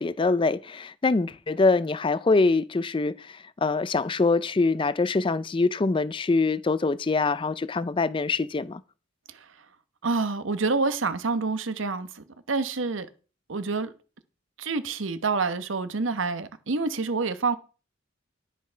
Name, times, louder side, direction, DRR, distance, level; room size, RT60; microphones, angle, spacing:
voice 1, 0.0-8.8, left 3 dB, 25° left, 0.4 m, -24 dB
voice 2, 10.0-13.1 13.5-13.9 14.6-17.6, right 4 dB, 80° right, 1.0 m, -27 dB
10.5 x 6.1 x 5.6 m
head